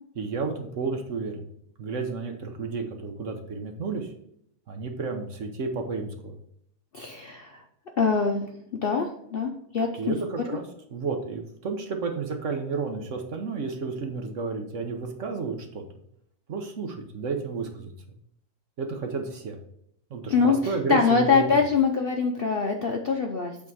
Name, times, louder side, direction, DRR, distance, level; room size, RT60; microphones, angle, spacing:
voice 1, 0.2-1.5 1.8-4.1 4.7-6.4 10.0-10.6 10.9-15.8 16.5-17.9 18.8-19.6 20.1-21.6, right 4 dB, 55° right, 4 dB, 1.2 m, -31 dB
voice 2, 6.9-7.6 8.0-10.2 20.3-23.6, left 5 dB, 55° left, 2 dB, 0.7 m, -24 dB
8.2 x 3.6 x 4.7 m, 0.70 s
omnidirectional pair, 1.6 m